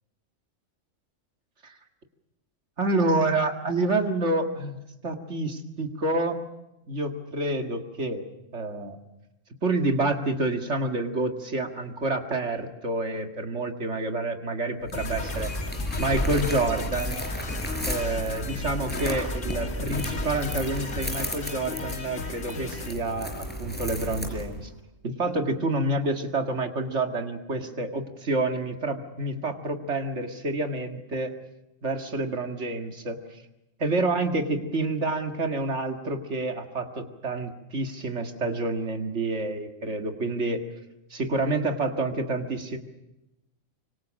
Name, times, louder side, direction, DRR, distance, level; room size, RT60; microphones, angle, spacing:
voice 1, 2.8-4.8 5.0-6.4 6.9-8.3 8.5-9.0 9.6-15.5 16.0-17.2 17.9-24.7 25.0-31.3 31.8-33.2 33.8-40.6 41.1-42.8, right 2 dB, 60° right, 5 dB, 2.3 m, -28 dB
sound 1, 14.8-24.7, equal, 5° left, 5.1 m, -33 dB
sound 2, 14.9-22.9, left 4 dB, 70° left, 1.8 m, -37 dB
26.0 x 24.5 x 6.4 m, 0.93 s
omnidirectional pair, 1.4 m